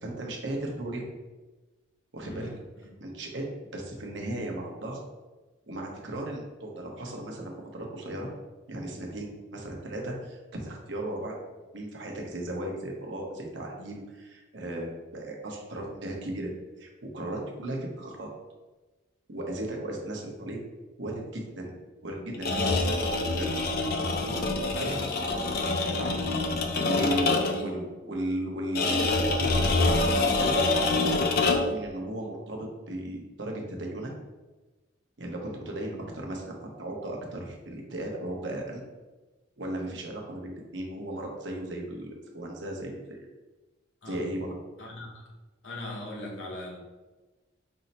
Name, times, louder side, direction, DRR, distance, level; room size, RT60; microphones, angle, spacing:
voice 1, 0.0-1.0 2.1-2.5 3.0-3.4 3.7-5.0 5.7-8.3 8.7-11.4 11.7-16.5 16.8-18.3 19.3-20.6 21.0-21.7 22.0-23.5 24.0-25.0 25.8-26.1 26.7-27.4 27.6-34.1 35.2-38.8 39.6-43.3 44.0-44.6, right 1 dB, 65° right, 0 dB, 0.9 m, -36 dB
sound 1, 22.3-27.7 28.8-31.8, left 3 dB, 50° left, 0.4 m, -26 dB
voice 2, 44.8-45.2 45.6-46.8, left 1 dB, 70° left, -2 dB, 1.0 m, -39 dB
5.5 x 2.1 x 4.0 m, 1.2 s
head